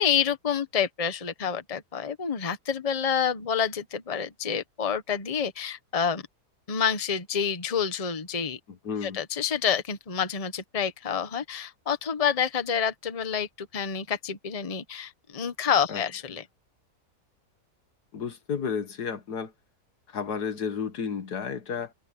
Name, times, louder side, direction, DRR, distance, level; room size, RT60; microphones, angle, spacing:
voice 1, 0.0-6.2 6.7-8.6 9.0-16.4, left 7 dB, 25° left, 1.1 m, -28 dB
voice 2, 8.8-9.2 15.9-16.0 18.1-19.5 20.1-21.9, left 6 dB, 75° left, 2.0 m, -32 dB
omnidirectional pair, 1.7 m